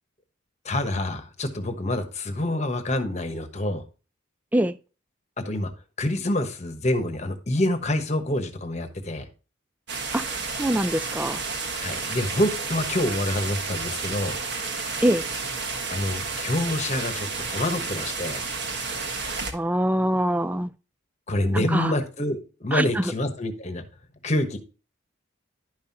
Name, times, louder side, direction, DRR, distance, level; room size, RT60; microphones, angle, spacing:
voice 1, 0.6-3.8 5.4-5.7 6.0-9.2 11.8-14.4 15.9-18.4 21.3-23.9 24.2-24.6, left 1 dB, 35° left, 1.2 m, -27 dB
sound 1, 9.9-19.5, right 4 dB, 55° right, 1.4 m, -31 dB
voice 2, 10.6-11.4 15.0-15.2 19.5-20.7 21.5-21.9 22.7-23.1, right 1 dB, 10° right, 0.3 m, -24 dB
11.5 x 5.6 x 2.8 m
head